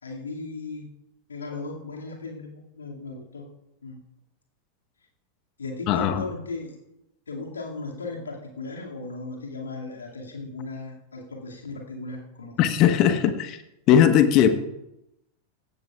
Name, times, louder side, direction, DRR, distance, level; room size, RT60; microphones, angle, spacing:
voice 1, 0.0-0.9 1.3-3.5 3.8-4.0 5.6-6.8 7.3-12.9, left 3 dB, 70° left, -1 dB, 2.3 m, -37 dB
voice 2, 12.6-13.6 13.9-14.5, left 9 dB, 40° left, 9 dB, 1.3 m, -18 dB
17.0 x 14.0 x 2.4 m, 0.89 s
figure-of-eight pair, 90°, 0 cm